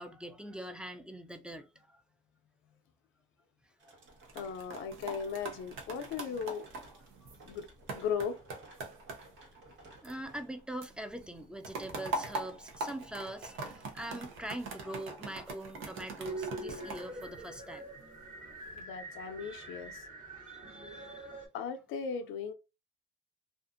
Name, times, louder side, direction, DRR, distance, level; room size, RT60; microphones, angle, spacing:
voice 1, 0.0-2.0 3.8-4.0 7.2-7.3 10.0-17.9 19.4-19.7 20.5-21.4, right 1 dB, 5° right, 0.4 m, -43 dB
sound 1, 3.8-12.5, right 2 dB, 70° right, 1.3 m, -59 dB
sound 2, 4.1-10.5 10.8-18.0 18.5-18.8, right 3 dB, 85° right, 0.7 m, -43 dB
voice 2, 4.3-6.7 7.5-7.7 7.9-8.4 18.8-20.1 21.5-22.5, left 6 dB, 85° left, 0.4 m, -37 dB
sound 3, 16.2-21.4, right 2 dB, 45° right, 1.3 m, -44 dB
2.5 x 2.4 x 2.4 m
cardioid pair, 90°, 20 cm